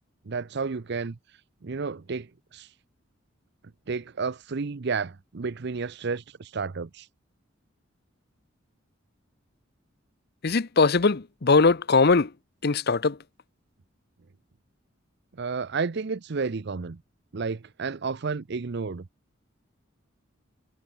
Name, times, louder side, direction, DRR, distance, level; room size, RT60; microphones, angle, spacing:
voice 1, 0.3-1.2 1.6-2.7 3.9-7.1 15.4-17.0 17.3-19.1, right 4 dB, 55° right, 0.6 m, -31 dB
voice 2, 10.4-12.3 12.6-13.2, left 4 dB, 50° left, 0.8 m, -21 dB
head